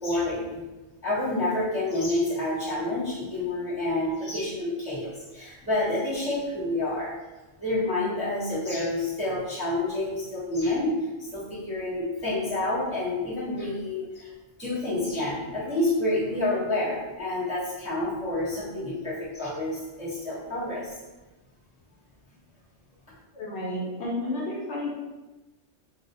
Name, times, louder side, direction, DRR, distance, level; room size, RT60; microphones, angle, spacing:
voice 1, 0.0-0.6 1.0-7.1 7.6-11.0 11.3-14.3 14.6-21.0, left 2 dB, 10° right, -10 dB, 0.5 m, -28 dB
voice 2, 23.3-24.9, left 1 dB, 65° left, -5 dB, 0.9 m, -31 dB
2.4 x 2.0 x 2.6 m, 1.1 s
omnidirectional pair, 1.3 m